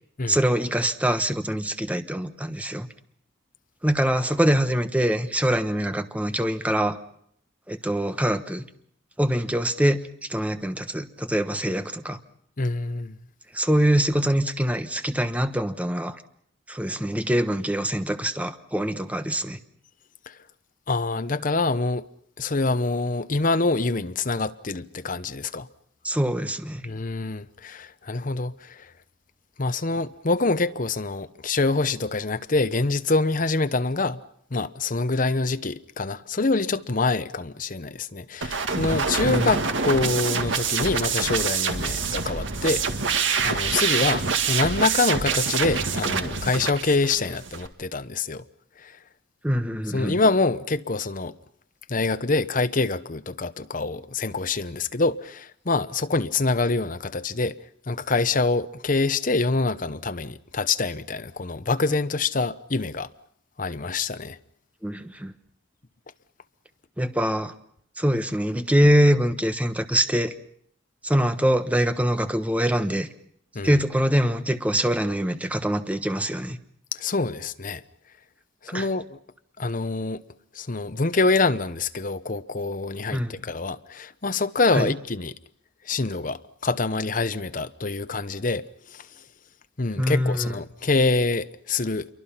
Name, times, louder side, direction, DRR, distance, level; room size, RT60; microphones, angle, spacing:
voice 1, 0.3-2.9 3.8-7.0 7.7-8.7 9.2-12.2 13.5-16.2 16.7-19.6 26.0-26.8 39.2-39.5 49.4-50.2 64.8-65.3 67.0-67.5 68.0-70.3 71.0-73.1 73.6-76.6 78.7-78.9 83.1-83.3 84.7-84.9 90.0-90.5, equal, 5° right, 1.1 m, -24 dB
voice 2, 12.6-13.2 20.3-20.4 20.9-22.0 22.4-25.7 26.8-28.9 29.6-34.2 34.5-42.8 43.4-48.4 48.8-49.0 49.9-51.3 51.9-57.6 57.9-63.1 63.6-64.4 73.5-73.7 76.9-77.8 78.7-79.2 79.6-80.2 80.5-85.3 85.9-88.6 88.9-89.1 89.8-92.1, left 3 dB, 45° left, 0.9 m, -25 dB
sound 1, 38.4-47.7, right 5 dB, 80° right, 1.9 m, -26 dB
28.0 x 23.5 x 5.8 m
head